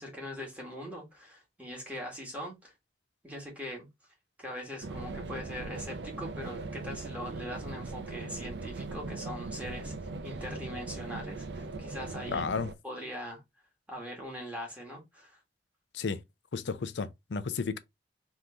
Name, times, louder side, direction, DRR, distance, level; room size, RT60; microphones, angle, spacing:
voice 1, 0.0-2.7 3.2-3.9 4.4-9.9 10.2-12.5 12.8-13.4 13.9-15.4, equal, 10° right, 1.8 m, -41 dB
sound 1, 4.8-12.7, right 3 dB, 75° right, 0.6 m, -39 dB
voice 2, 12.3-12.7 15.9-16.2 16.5-17.8, left 5 dB, 85° left, 0.5 m, -33 dB
3.7 x 3.0 x 3.6 m
head